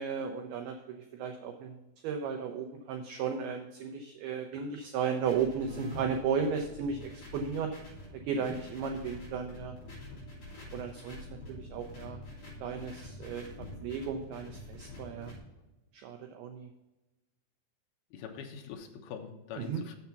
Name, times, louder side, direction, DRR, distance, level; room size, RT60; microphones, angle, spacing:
voice 1, 0.0-1.8 2.0-7.7 8.3-9.8 10.7-11.2 11.5-12.2 12.6-13.5 13.8-15.3 15.9-16.7 19.6-19.8, right 6 dB, 85° right, 4 dB, 2.2 m, -34 dB
sound 1, 5.2-15.4, left 1 dB, 40° left, 4.0 m, -46 dB
voice 2, 18.1-20.0, left 7 dB, 80° left, 3 dB, 2.3 m, -43 dB
7.0 x 6.8 x 5.7 m, 1.0 s
omnidirectional pair, 5.4 m